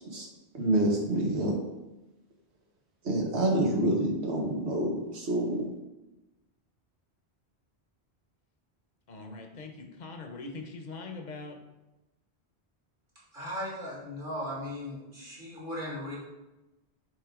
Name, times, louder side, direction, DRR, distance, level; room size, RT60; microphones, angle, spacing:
voice 1, 0.5-1.6 3.0-5.6, right 1 dB, 85° right, 0 dB, 1.5 m, -27 dB
voice 2, 9.1-11.6, left 3 dB, 45° left, 4 dB, 0.9 m, -42 dB
voice 3, 13.3-16.2, left 1 dB, 50° right, -5 dB, 2.3 m, -37 dB
7.8 x 3.7 x 3.6 m, 1.0 s
omnidirectional pair, 1.1 m